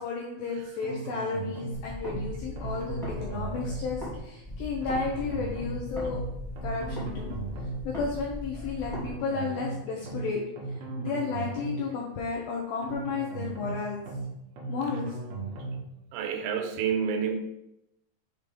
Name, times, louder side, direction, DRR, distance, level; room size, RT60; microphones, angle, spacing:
voice 1, 0.0-6.2 6.6-7.4 7.8-10.4 11.0-14.0 14.7-15.2, left 4 dB, 80° left, -2 dB, 2.1 m, -33 dB
sound 1, 0.8-1.8 2.1-2.3 2.6-3.8 4.8-5.8 6.1-6.3 6.6-7.8 8.8-9.8 10.1-10.3 10.6-11.8 12.8-13.8 14.1-14.3 14.6-15.8, right 3 dB, 65° right, 2.9 m, -37 dB
sound 2, 1.7-4.2 4.4-9.1, left 1 dB, ahead, 0.7 m, -38 dB
voice 2, 16.1-17.4, right 7 dB, 90° right, 5 dB, 3.1 m, -29 dB
7.3 x 3.2 x 5.2 m, 0.84 s
omnidirectional pair, 5.2 m